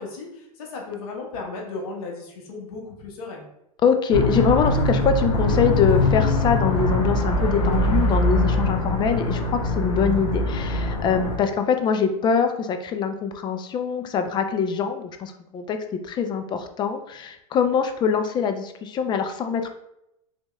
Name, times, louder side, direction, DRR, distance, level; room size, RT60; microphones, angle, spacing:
voice 1, 0.0-3.5, left 3 dB, 65° left, -1 dB, 1.2 m, -35 dB
voice 2, 3.8-15.8 16.1-19.7, left 6 dB, 25° left, 7 dB, 0.4 m, -23 dB
sound 1, 4.1-11.4, left 1 dB, 85° left, 1.3 m, -22 dB
4.2 x 2.9 x 2.2 m, 0.81 s
hypercardioid pair, 115°, 19 cm